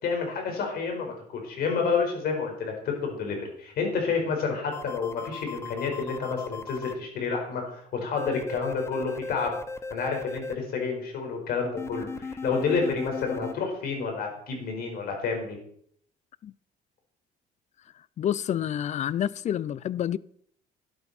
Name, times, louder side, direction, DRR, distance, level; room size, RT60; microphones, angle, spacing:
voice 1, 0.0-9.6 9.9-15.6, left 5 dB, 65° left, 4.7 m, -29 dB
sound 1, 4.7-6.9 8.2-10.5 11.8-13.5, left 4 dB, 15° left, 0.8 m, -37 dB
voice 2, 18.2-20.2, left 10 dB, 45° left, 0.5 m, -28 dB
12.5 x 11.0 x 4.3 m
cardioid pair, 110°, 17 cm